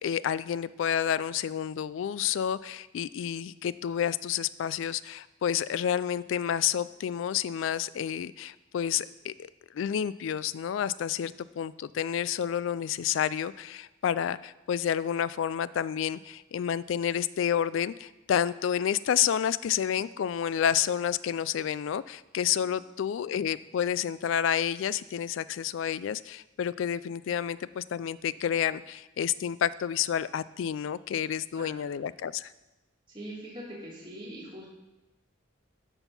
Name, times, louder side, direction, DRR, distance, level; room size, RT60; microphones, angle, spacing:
voice 1, 0.0-32.5, left 9 dB, 75° left, 17 dB, 0.3 m, -30 dB
voice 2, 33.1-34.7, right 1 dB, 25° right, -6 dB, 2.9 m, -42 dB
12.5 x 4.5 x 5.4 m, 1.0 s
head